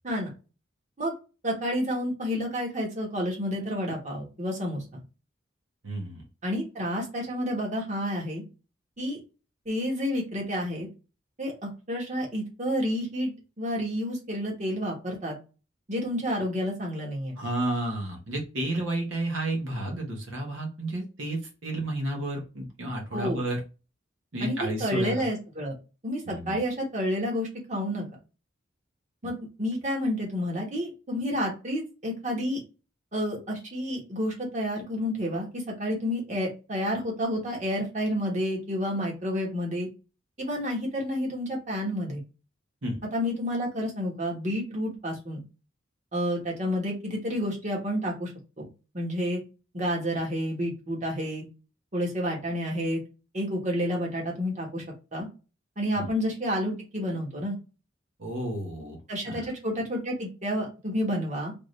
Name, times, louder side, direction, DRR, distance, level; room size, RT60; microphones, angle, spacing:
voice 1, 1.4-5.0 6.4-8.4 9.0-9.2 9.6-10.9 11.4-13.3 13.6-15.4 15.9-17.4 23.1-23.4 24.4-25.7 26.0-28.1 29.2-32.6 33.1-39.9 40.4-42.2 43.0-45.4 46.1-48.3 48.6-48.7 48.9-49.4 49.7-51.4 51.9-53.0 53.3-54.8 55.1-55.3 55.8-57.6 59.1-61.5, equal, 40° right, -1 dB, 1.3 m, -30 dB
voice 2, 5.8-6.2 17.4-23.6 24.3-25.2 26.3-26.6 29.2-29.3 42.8-43.0 56.0-56.1 58.2-59.0 59.2-59.5, right 1 dB, 85° right, 0 dB, 1.1 m, -31 dB
3.6 x 2.5 x 3.2 m, 0.31 s
head